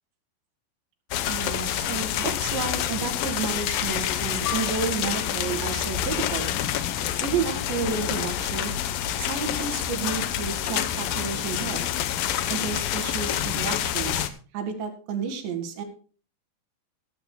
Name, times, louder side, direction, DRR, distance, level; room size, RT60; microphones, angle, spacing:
sound 1, 1.1-14.3, left 11 dB, 85° left, 1.9 m, -28 dB
voice 1, 1.3-6.6 7.2-8.8 9.2-11.8 12.5-14.3 14.5-15.8, right 6 dB, 75° right, 6 dB, 4.1 m, -31 dB
Piano, 4.4-9.5 9.8-10.0 10.8-11.1, left 12 dB, 30° left, 2.7 m, -42 dB
15.5 x 14.5 x 2.2 m, 0.38 s
omnidirectional pair, 5.2 m